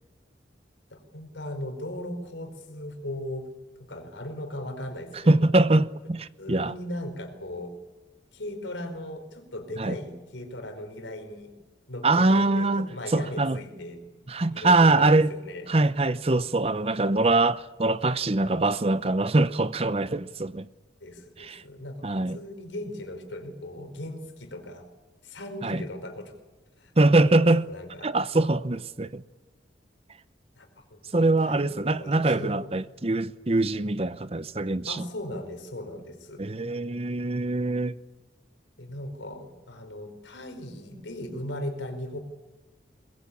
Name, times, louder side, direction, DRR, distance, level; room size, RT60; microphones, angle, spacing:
voice 1, 0.9-3.5 3.9-5.5 6.4-7.7 8.3-11.5 11.9-14.0 14.5-15.7 21.0-24.8 25.2-26.3 26.8-26.9 27.2-28.1 30.6-32.7 34.9-36.4 38.8-42.2, left 1 dB, 85° left, 4.7 m, -38 dB
voice 2, 5.1-6.7 9.8-10.0 12.0-13.6 14.3-15.3 15.7-20.7 21.4-21.6 22.0-22.4 25.6-25.8 27.0-27.7 28.0-29.2 31.1-35.0 36.4-38.0, right 2 dB, 30° right, 0.7 m, -23 dB
22.5 x 21.0 x 8.6 m
head